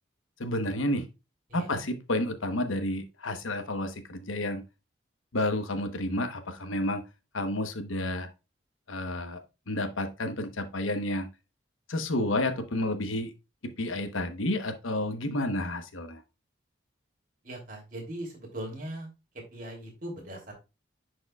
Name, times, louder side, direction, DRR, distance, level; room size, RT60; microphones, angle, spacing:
voice 1, 0.4-1.1 1.5-4.6 5.3-7.0 7.3-8.3 8.9-9.4 9.7-11.3 11.9-13.3 13.6-16.2, left 1 dB, 90° left, 1.1 m, -30 dB
voice 2, 1.5-1.8 17.4-19.1 19.5-20.5, right 1 dB, 45° right, 3.0 m, -39 dB
10.5 x 4.8 x 2.3 m
head